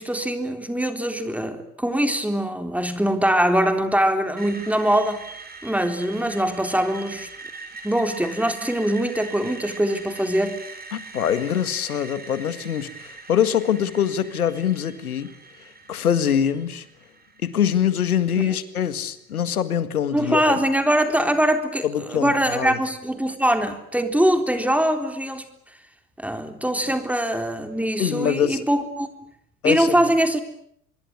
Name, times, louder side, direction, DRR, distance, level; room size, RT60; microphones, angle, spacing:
voice 1, 0.0-5.2 5.6-7.3 7.8-10.6 18.4-18.6 20.1-25.5 26.2-29.1 29.6-30.4, right 1 dB, 5° right, 3.8 m, -22 dB
Screech, 4.4-18.3, right 3 dB, 20° right, 5.7 m, -41 dB
voice 2, 10.9-15.3 15.9-16.9 17.4-20.5 21.8-22.8 28.0-28.6 29.6-29.9, left 9 dB, 80° left, 2.0 m, -24 dB
26.0 x 22.0 x 9.8 m
figure-of-eight pair, 70°, 43 cm